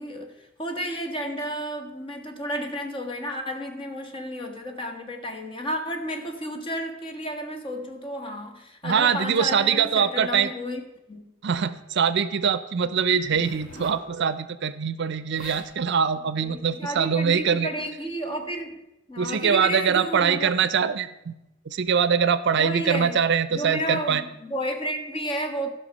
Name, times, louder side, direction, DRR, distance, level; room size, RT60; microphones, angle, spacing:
voice 1, 0.0-10.8 11.1-11.2 16.4-18.8 19.1-20.5 22.6-23.2 23.5-25.7, equal, 25° left, 4 dB, 1.3 m, -32 dB
voice 2, 8.8-10.5 11.4-17.7 19.2-21.3 21.7-24.2, right 7 dB, 60° right, 15 dB, 0.5 m, -23 dB
Zipper (clothing), 13.2-14.1 15.0-15.1 15.3-15.7 16.4-16.7, left 1 dB, 85° left, 1.8 m, -43 dB
14.5 x 5.9 x 5.3 m, 0.91 s
head